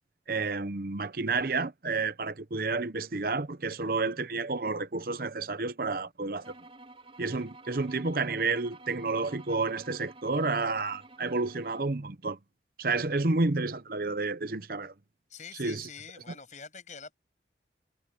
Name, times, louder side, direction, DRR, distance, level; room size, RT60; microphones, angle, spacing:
voice 1, 0.3-6.5 7.2-12.4 12.8-14.9 15.6-15.9, right 3 dB, 55° right, 0.8 m, -30 dB
sound 1, 6.4-11.9, right 2 dB, 30° right, 4.5 m, -50 dB
voice 2, 15.3-17.1, left 6 dB, 45° left, 7.4 m, -45 dB
head